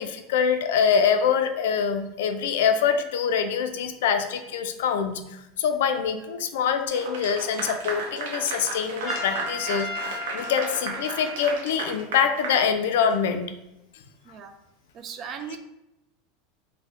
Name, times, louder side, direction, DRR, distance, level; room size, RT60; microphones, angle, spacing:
voice 1, 0.0-13.4 15.5-15.6, left 7 dB, 80° left, 8 dB, 0.3 m, -25 dB
Clapping / Applause, 6.9-13.3, right 3 dB, 85° right, 0.6 m, -34 dB
Trumpet, 9.1-11.7, left 2 dB, 10° right, 1.1 m, -35 dB
voice 2, 14.9-15.6, right 7 dB, 35° right, 7 dB, 0.3 m, -37 dB
4.0 x 2.1 x 2.4 m, 0.89 s
supercardioid pair, 145°, 0 cm